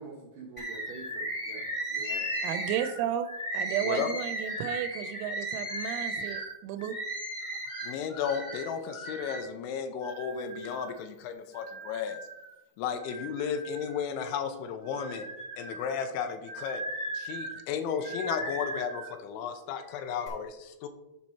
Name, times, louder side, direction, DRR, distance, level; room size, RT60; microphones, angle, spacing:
voice 1, 0.0-2.3, right 4 dB, 70° right, -2 dB, 2.2 m, -45 dB
Bird, 0.6-9.5 10.0-11.0 11.5-12.5 13.0-14.3 14.8-19.1 19.8-20.3, right 1 dB, 15° left, 1.3 m, -37 dB
voice 2, 2.4-3.3 3.5-7.0, right 10 dB, 85° right, 8 dB, 3.0 m, -33 dB
voice 3, 7.8-12.2 12.8-15.3 15.6-16.8 17.1-20.9, left 7 dB, 85° left, 7 dB, 3.1 m, -34 dB
11.0 x 5.3 x 4.3 m, 0.92 s
omnidirectional pair, 5.5 m